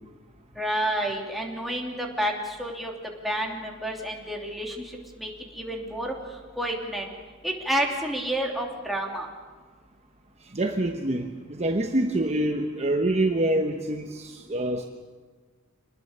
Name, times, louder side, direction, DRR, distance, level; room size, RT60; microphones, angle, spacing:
voice 1, 0.6-2.3 2.6-2.9 3.2-4.9 5.2-6.1 6.6-7.1 7.4-9.3, right 1 dB, ahead, -1 dB, 2.9 m, -29 dB
voice 2, 10.4-14.8, right 1 dB, 30° right, 4 dB, 1.1 m, -26 dB
26.5 x 20.0 x 6.8 m, 1.5 s
head